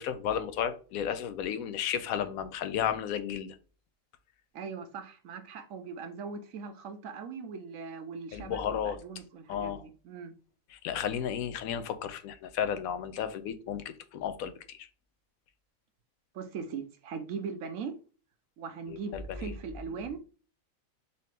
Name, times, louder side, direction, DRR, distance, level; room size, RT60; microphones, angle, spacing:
voice 1, 0.0-3.6 8.3-9.0 9.5-9.8 10.7-14.9 18.9-19.5, left 9 dB, 85° left, 1.0 m, -33 dB
voice 2, 4.5-10.3 16.3-17.9 18.6-20.2, right 5 dB, 75° right, 1.1 m, -40 dB
4.2 x 2.8 x 3.2 m
omnidirectional pair, 1.4 m